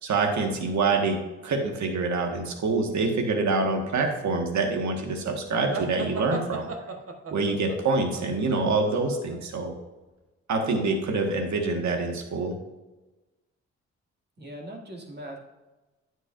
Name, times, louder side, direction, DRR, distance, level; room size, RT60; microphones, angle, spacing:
voice 1, 0.0-6.7 7.3-9.7 10.5-12.5, right 3 dB, 75° right, 3 dB, 1.6 m, -26 dB
sound 1, 5.7-9.4, right 4 dB, 50° right, 1.3 m, -36 dB
voice 2, 14.4-15.4, right 1 dB, 35° right, 0 dB, 2.3 m, -40 dB
9.5 x 8.3 x 2.6 m, 1.1 s
supercardioid pair, 50°, 29 cm